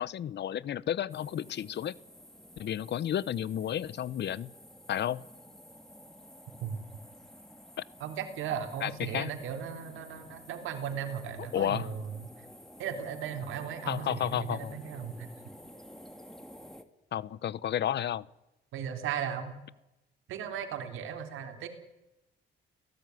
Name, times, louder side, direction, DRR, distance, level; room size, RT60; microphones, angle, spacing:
voice 1, 0.0-1.9 2.6-4.5 4.9-5.2 8.8-9.3 11.5-11.9 13.9-14.7 17.1-18.3, left 10 dB, 60° left, 21 dB, 0.9 m, -32 dB
sound 1, 1.1-16.8, equal, ahead, 2.6 m, -52 dB
voice 2, 8.0-12.3 12.8-15.3 18.7-19.6 20.3-21.7, right 8 dB, 85° right, 7 dB, 3.7 m, -36 dB
30.0 x 18.0 x 9.6 m, 0.95 s
cardioid pair, 90°, 20 cm